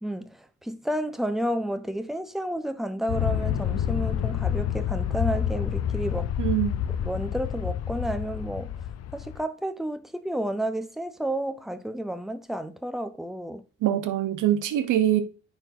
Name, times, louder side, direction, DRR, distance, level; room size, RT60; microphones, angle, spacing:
voice 1, 0.0-6.3 7.0-8.7 9.1-13.6, right 1 dB, ahead, 0.8 m, -31 dB
Aircraft, 3.1-9.4, left 9 dB, 55° left, 0.6 m, -28 dB
voice 2, 6.4-6.8 13.8-15.2, right 12 dB, 85° right, 1.0 m, -23 dB
9.8 x 4.5 x 2.7 m
cardioid pair, 90°, 30 cm